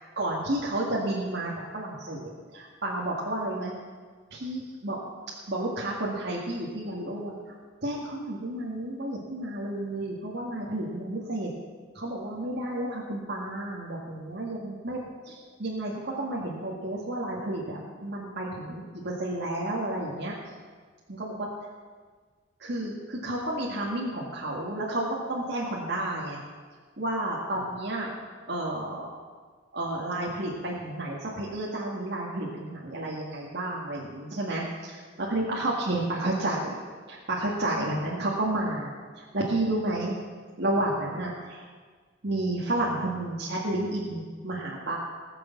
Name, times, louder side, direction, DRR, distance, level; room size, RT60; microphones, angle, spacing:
voice 1, 0.2-3.7 4.3-5.0 5.5-7.3 7.8-11.5 11.9-15.0 15.2-20.3 21.1-21.5 22.6-26.4 27.0-28.2 28.5-29.1 29.7-36.8 37.1-40.2 40.6-41.6 42.2-45.0, right 1 dB, 60° right, -4 dB, 2.0 m, -31 dB
19.0 x 6.9 x 7.2 m, 1.5 s
head